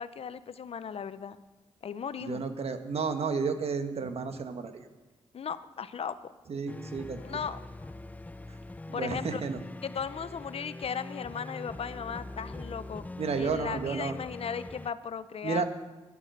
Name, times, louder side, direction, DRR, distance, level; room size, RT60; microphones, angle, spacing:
voice 1, 0.0-1.4 1.8-2.4 5.3-6.3 7.2-7.6 8.9-9.4 9.8-13.0 13.4-15.6, left 7 dB, 60° left, 14 dB, 0.6 m, -36 dB
voice 2, 2.2-4.8 6.5-7.4 8.9-9.6 13.2-14.2 15.4-15.6, right 5 dB, 65° right, 8 dB, 1.2 m, -32 dB
sound 1, 6.7-14.9, left 2 dB, 15° left, 0.4 m, -43 dB
11.5 x 10.0 x 6.5 m, 1.2 s
cardioid pair, 65°, 11 cm